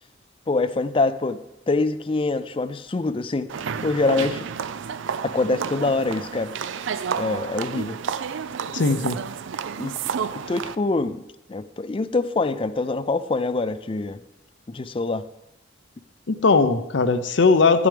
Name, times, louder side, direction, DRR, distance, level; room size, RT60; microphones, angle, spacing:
voice 1, 0.5-1.4 1.7-3.5 3.8-4.5 5.2-6.5 7.2-8.0 9.8-10.0 10.3-11.2 11.5-14.2 14.7-15.2, left 3 dB, 25° left, 13 dB, 0.4 m, -24 dB
sound 1, 3.5-10.8, right 7 dB, 70° right, 0.4 m, -30 dB
voice 2, 8.7-9.2 16.3-17.9, left 4 dB, 65° left, 11 dB, 0.6 m, -19 dB
12.5 x 11.5 x 3.4 m, 0.94 s
head